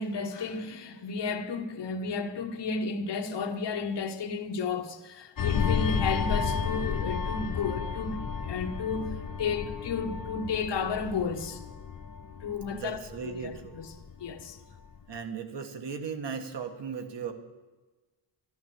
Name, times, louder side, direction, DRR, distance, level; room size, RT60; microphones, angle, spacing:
voice 1, 0.0-11.6 12.4-13.9 14.2-14.6, left 5 dB, 60° left, 1.4 m, -33 dB
sound 1, 5.4-14.4 14.8-15.0, left 6 dB, 45° left, 0.9 m, -32 dB
voice 2, 12.7-13.8 15.1-17.3, right 6 dB, 65° right, 1.6 m, -37 dB
13.5 x 11.0 x 7.6 m
wide cardioid pair, 155°, 46 cm